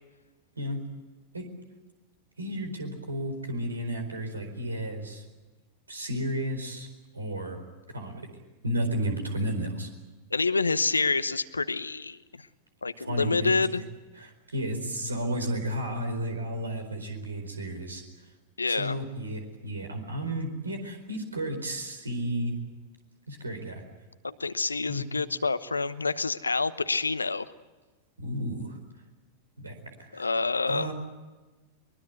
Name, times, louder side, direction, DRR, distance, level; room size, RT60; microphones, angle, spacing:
voice 1, 0.6-0.9 1.3-1.5 2.4-5.2 5.9-6.9 7.1-7.6 7.9-8.3 8.6-9.9 13.0-13.5 14.2-18.0 18.7-22.6 23.3-23.8 24.9-25.0 28.2-28.8 29.6-29.7 30.0-30.3 30.7-30.9, right 1 dB, 80° right, 6 dB, 4.5 m, -32 dB
voice 2, 10.3-12.5 12.8-13.8 18.6-19.0 24.2-27.5 30.1-30.9, left 4 dB, 80° left, 15 dB, 0.9 m, -27 dB
23.5 x 22.0 x 8.2 m, 1.2 s
figure-of-eight pair, 90°, 0 cm